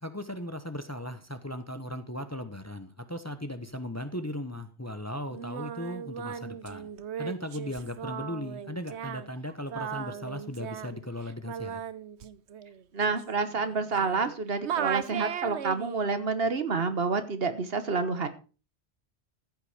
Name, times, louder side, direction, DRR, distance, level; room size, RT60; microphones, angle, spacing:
voice 1, 0.0-6.9 7.2-11.8, left 1 dB, 15° left, 10 dB, 1.0 m, -37 dB
Singing, 5.3-14.3 14.6-16.1, right 8 dB, 90° right, 1.1 m, -37 dB
voice 2, 12.9-18.3, right 4 dB, 65° right, 10 dB, 1.4 m, -28 dB
14.0 x 8.3 x 5.0 m, 0.35 s
omnidirectional pair, 1.1 m